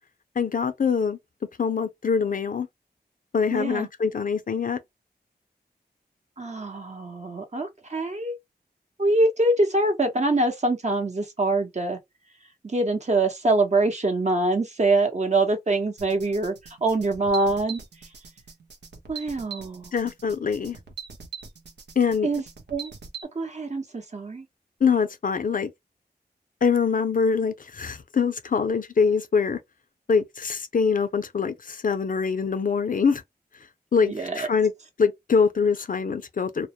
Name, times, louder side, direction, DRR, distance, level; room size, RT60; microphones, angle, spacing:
voice 1, 0.4-1.2 1.6-2.7 3.3-4.8 19.9-20.8 22.0-22.3 24.8-25.7 26.6-29.6 30.1-33.2 33.9-34.7 35.0-36.7, left 5 dB, 50° left, 0.5 m, -24 dB
voice 2, 3.5-3.9 6.4-8.4 9.0-12.0 12.6-16.6 16.8-17.8 19.1-19.9 22.2-22.4 22.7-22.9 23.3-24.5 34.0-34.5, right 2 dB, 40° right, 0.8 m, -24 dB
sound 1, 16.0-23.2, right 6 dB, 80° right, 0.6 m, -42 dB
2.1 x 2.1 x 2.8 m
cardioid pair, 50°, 17 cm